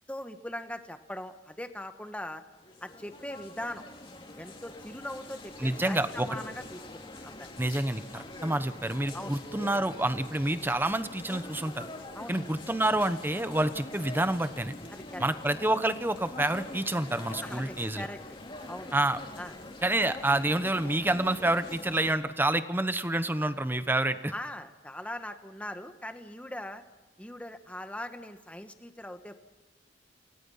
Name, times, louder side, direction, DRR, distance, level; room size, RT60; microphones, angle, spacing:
voice 1, 0.1-2.4 2.8-3.8 4.4-7.5 9.1-9.4 12.1-12.4 14.9-15.3 17.4-18.2 18.7-18.9 19.4-19.6 24.3-26.8 27.2-29.3, left 1 dB, 10° left, 7 dB, 1.4 m, -40 dB
sound 1, 2.5-22.1, left 2 dB, 30° left, 2.5 m, -44 dB
voice 2, 5.6-6.3 7.6-11.9 12.3-14.8 15.2-18.1 18.9-19.2 19.8-24.3, right 1 dB, 10° right, 11 dB, 1.0 m, -28 dB
28.5 x 18.0 x 5.7 m, 1.2 s
head